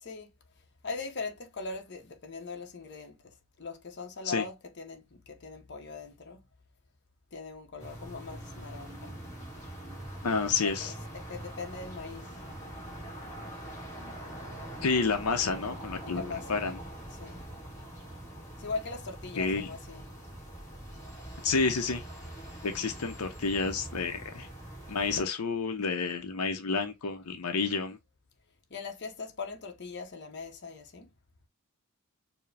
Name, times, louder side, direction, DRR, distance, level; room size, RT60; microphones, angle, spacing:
voice 1, 0.0-0.3 0.8-6.5 7.3-9.2 10.3-12.4 14.6-14.8 16.0-16.6 17.1-17.4 18.6-20.1 28.7-31.1, left 4 dB, 50° left, 0.8 m, -40 dB
sound 1, 7.8-25.2, right 1 dB, 15° left, 1.9 m, -43 dB
voice 2, 10.2-10.9 14.8-16.2 16.5-16.8 19.4-19.7 21.4-22.0 22.6-24.5 24.9-28.0, left 4 dB, 80° left, 0.7 m, -29 dB
4.7 x 2.1 x 3.3 m
head